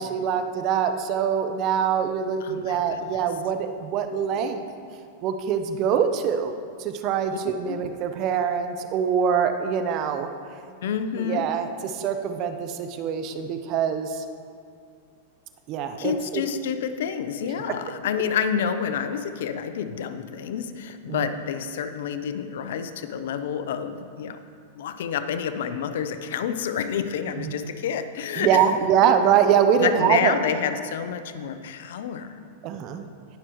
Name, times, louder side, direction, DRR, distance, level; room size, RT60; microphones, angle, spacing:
voice 1, 0.0-4.6 5.2-6.5 6.8-10.3 11.2-14.2 15.7-16.4 21.1-21.3 27.4-27.6 28.4-30.3 32.6-33.0, right 8 dB, 45° right, 8 dB, 0.7 m, -24 dB
voice 2, 2.4-3.0 7.3-7.4 7.7-7.8 10.8-11.5 16.0-24.4 24.7-28.6 29.0-29.1 29.8-32.3, left 7 dB, 75° left, 10 dB, 0.6 m, -29 dB
18.5 x 6.2 x 3.1 m, 2.3 s
hypercardioid pair, 120°, 0 cm